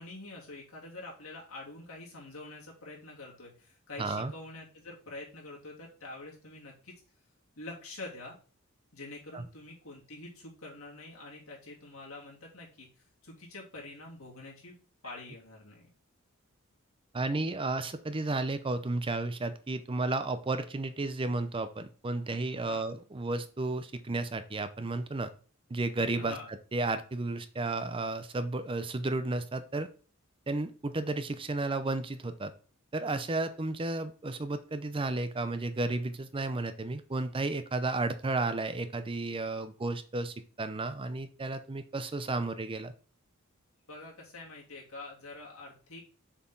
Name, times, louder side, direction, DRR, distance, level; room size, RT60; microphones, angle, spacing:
voice 1, 0.0-6.9 7.6-8.4 8.9-12.9 13.2-14.7 15.0-15.8 22.6-22.8 26.2-26.5 43.9-46.0, left 2 dB, 70° left, -3 dB, 2.9 m, -46 dB
voice 2, 4.0-4.3 9.3-9.4 17.1-25.3 25.7-26.4 26.7-29.9 30.5-32.5 32.9-42.9, right 2 dB, 25° right, 11 dB, 0.6 m, -33 dB
7.0 x 4.6 x 3.8 m, 0.38 s
head